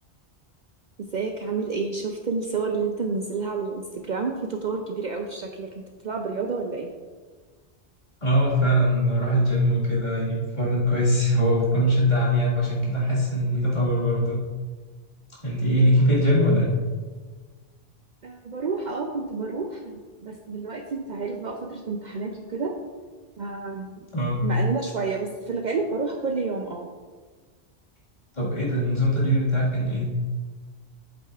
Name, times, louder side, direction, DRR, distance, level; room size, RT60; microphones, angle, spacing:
voice 1, 1.1-6.9 18.2-22.7 23.4-24.1 24.4-26.9, right 4 dB, 55° right, 3 dB, 0.6 m, -30 dB
voice 2, 8.2-14.4 15.4-16.7 24.1-24.5 28.3-30.1, equal, 45° left, -6 dB, 2.0 m, -22 dB
7.9 x 7.6 x 2.4 m, 1.4 s
omnidirectional pair, 1.1 m